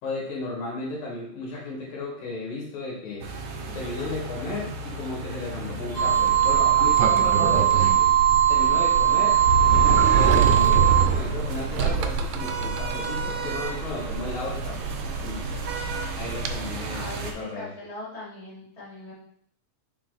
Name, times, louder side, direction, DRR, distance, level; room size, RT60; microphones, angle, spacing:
voice 1, 0.0-3.3 3.7-8.1 8.5-9.4 9.7-15.7 16.1-17.7, left 3 dB, 75° left, -3 dB, 3.1 m, -34 dB
sound 1, 3.2-17.3, right 4 dB, 70° right, 1.5 m, -35 dB
sound 2, 5.9-11.0, right 11 dB, 50° left, 2.2 m, -20 dB
Sliding door, 6.0-16.5, right 5 dB, 85° right, 2.1 m, -26 dB
voice 2, 16.9-19.1, left 2 dB, 15° left, -7 dB, 1.5 m, -39 dB
6.0 x 4.2 x 3.8 m, 0.65 s
omnidirectional pair, 3.5 m